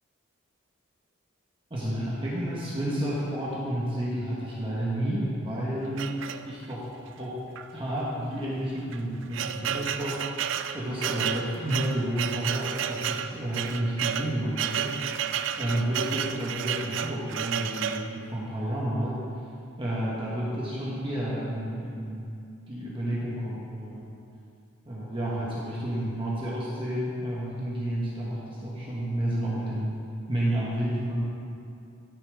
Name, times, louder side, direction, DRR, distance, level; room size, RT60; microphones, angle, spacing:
voice 1, 1.7-6.2 6.5-6.8 7.2-7.3 7.7-10.2 10.7-14.9 15.6-19.2 19.8-22.2 22.7-24.1 24.8-29.9 30.3-31.2, right 1 dB, 25° right, -7 dB, 1.4 m, -30 dB
sound 1, 6.0-6.8 7.6-7.7 8.0-8.1 8.8-18.1, right 8 dB, 60° right, 0.4 m, -31 dB
13.5 x 6.9 x 3.6 m, 2.5 s
head